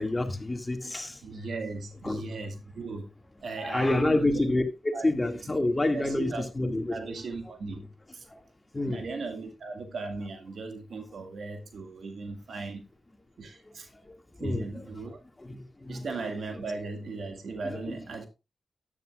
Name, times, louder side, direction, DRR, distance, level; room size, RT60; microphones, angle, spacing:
voice 1, 0.0-1.2 2.0-2.2 3.6-7.1 8.3-8.4 8.7-9.1 14.1-14.2 14.4-14.9 15.4-16.0 17.6-18.0, left 2 dB, 30° left, 2.1 m, -28 dB
voice 2, 1.2-3.1 3.4-4.5 4.9-5.1 5.9-7.9 8.1-8.2 8.8-12.8 13.4-13.9 14.4-15.2 15.9-18.3, right 3 dB, 75° right, 2.0 m, -37 dB
13.5 x 9.6 x 2.4 m
supercardioid pair, 40°, 0 cm